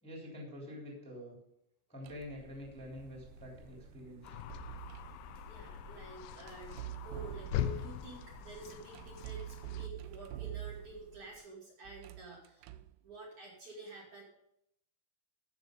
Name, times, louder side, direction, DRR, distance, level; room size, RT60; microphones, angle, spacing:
voice 1, 0.0-1.3 1.9-4.4, left 1 dB, ahead, -2 dB, 2.8 m, -47 dB
sound 1, 2.0-2.4 4.3-5.2 6.6-7.9 8.9-11.1 11.9-13.0, right 14 dB, 80° right, 2.5 m, -45 dB
sound 2, 2.2-11.4, right 5 dB, 65° right, 2.9 m, -56 dB
sound 3, 4.2-9.9, left 11 dB, 85° left, 2.2 m, -42 dB
voice 2, 5.5-12.7 13.0-14.2, right 2 dB, 50° right, -3 dB, 3.4 m, -50 dB
15.0 x 6.9 x 5.3 m, 0.77 s
omnidirectional pair, 5.0 m